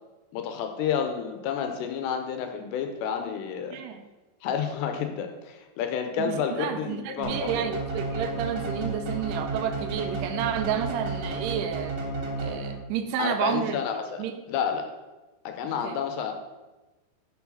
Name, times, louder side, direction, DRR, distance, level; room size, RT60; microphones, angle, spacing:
voice 1, 0.3-3.8 4.4-7.7 13.2-14.9 15.5-16.3, left 7 dB, 90° left, 5 dB, 2.9 m, -30 dB
voice 2, 3.7-4.1 6.2-12.0 12.4-13.8 14.2-14.4 15.6-16.0, right 9 dB, 85° right, 7 dB, 2.5 m, -30 dB
sound 1, 7.2-13.0, right 2 dB, 65° right, 1.8 m, -32 dB
6.3 x 4.7 x 5.4 m, 1.1 s
omnidirectional pair, 4.8 m